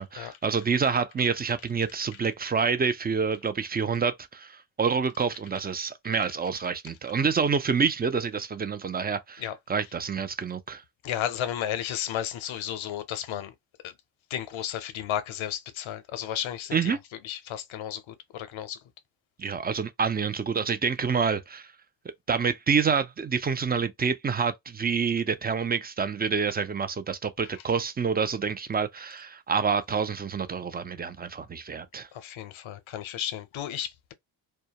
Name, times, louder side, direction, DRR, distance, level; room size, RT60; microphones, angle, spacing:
voice 1, 0.0-9.4 9.7-10.8 16.7-17.0 19.4-21.7 22.3-32.1, right 6 dB, 20° right, 0.3 m, -27 dB
voice 2, 11.0-13.5 13.8-13.9 14.3-17.0 17.2-18.8 32.1-34.1, left 10 dB, 85° left, 0.6 m, -33 dB
2.2 x 2.1 x 2.7 m
cardioid pair, 70°, 46 cm